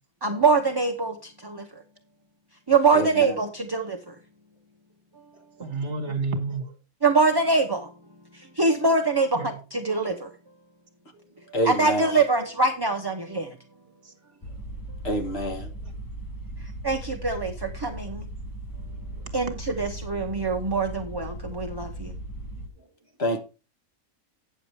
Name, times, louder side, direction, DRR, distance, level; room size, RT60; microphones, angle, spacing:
voice 1, 0.2-1.1 1.4-1.6 2.7-4.0 7.0-7.8 8.6-10.1 11.6-13.5 16.8-18.2 19.3-22.1, right 3 dB, 20° right, 0.7 m, -23 dB
voice 2, 2.9-3.2 11.5-12.1 15.0-15.7 23.2-23.4, equal, 50° left, 1.6 m, -26 dB
voice 3, 5.3-6.7 9.3-9.6 11.1-11.2 14.0-14.1 19.2-19.3 22.8-22.9, right 3 dB, 60° right, 1.7 m, -31 dB
sound 1, 14.4-22.7, right 1 dB, 15° left, 0.9 m, -37 dB
9.2 x 6.8 x 4.5 m
omnidirectional pair, 1.4 m